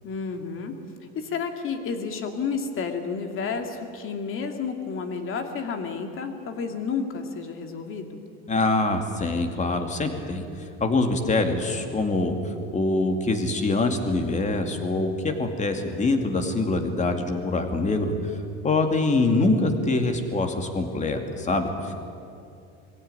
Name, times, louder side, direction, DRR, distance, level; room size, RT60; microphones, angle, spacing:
voice 1, 0.0-0.7 1.1-8.2, left 5 dB, 40° left, 5 dB, 2.7 m, -31 dB
voice 2, 8.5-10.4 10.8-18.1 18.6-21.9, left 2 dB, 20° left, 5 dB, 2.5 m, -24 dB
22.5 x 16.5 x 9.8 m, 2.6 s
supercardioid pair, 125°, 32 cm